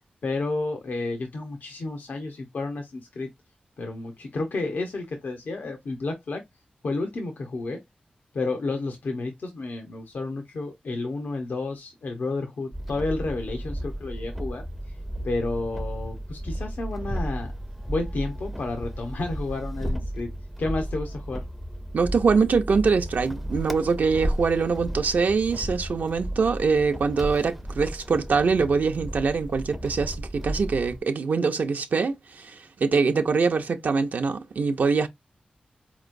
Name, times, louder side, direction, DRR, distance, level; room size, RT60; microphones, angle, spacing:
voice 1, 0.2-3.3 3.8-6.4 6.8-7.8 8.3-14.6 15.2-17.5 17.9-20.3 20.6-21.4, left 3 dB, 85° left, 0.8 m, -31 dB
sound 1, 12.7-31.0, equal, ahead, 0.4 m, -34 dB
voice 2, 21.9-35.1, right 5 dB, 75° right, 0.5 m, -23 dB
4.5 x 3.0 x 2.5 m
wide cardioid pair, 130°, 3 cm